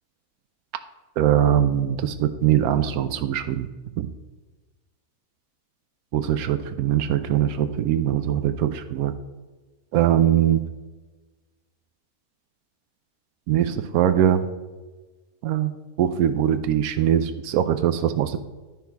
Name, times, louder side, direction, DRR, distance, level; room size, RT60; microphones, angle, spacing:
voice 1, 1.2-3.7 4.0-4.1 6.1-9.1 9.9-10.6 13.5-14.5 15.4-18.4, right 10 dB, 85° right, 9 dB, 1.1 m, -22 dB
11.0 x 5.8 x 4.6 m, 1.2 s
omnidirectional pair, 1.5 m